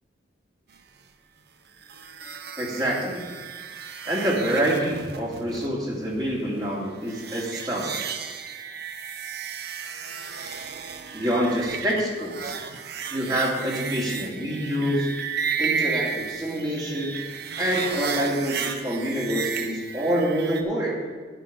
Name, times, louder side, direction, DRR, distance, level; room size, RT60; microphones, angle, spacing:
sound 1, 1.8-20.6, right 6 dB, 55° right, 0.8 m, -33 dB
voice 1, 2.6-3.2 4.0-7.9 10.7-10.8 11.1-12.6 13.1-15.1 15.6-17.2 17.6-21.0, equal, 20° right, -5 dB, 2.6 m, -26 dB
10.5 x 8.3 x 5.3 m, 1.5 s
head